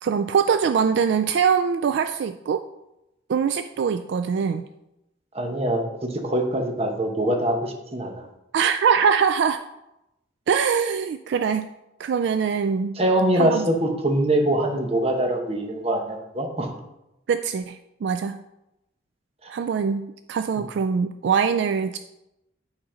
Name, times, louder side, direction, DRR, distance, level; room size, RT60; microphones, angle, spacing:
voice 1, 0.0-2.6 3.3-4.7 8.5-9.6 10.5-11.7 12.0-13.0 13.4-13.7 17.3-18.4 19.5-22.0, right 6 dB, 65° right, 9 dB, 0.3 m, -23 dB
voice 2, 5.3-8.3 13.0-16.7 19.4-19.5, right 1 dB, 35° right, 4 dB, 1.1 m, -23 dB
8.7 x 4.1 x 5.0 m, 0.90 s
head